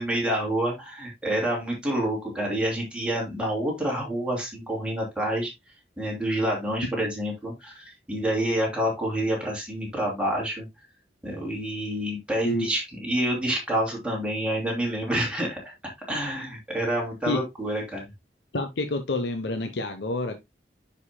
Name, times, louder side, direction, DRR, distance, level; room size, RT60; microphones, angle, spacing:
voice 1, 0.0-5.5 6.0-10.7 11.2-15.6 16.1-18.1, right 1 dB, 5° right, 3.0 m, -28 dB
voice 2, 18.5-20.4, left 2 dB, 80° left, 0.9 m, -28 dB
9.8 x 5.4 x 2.2 m
head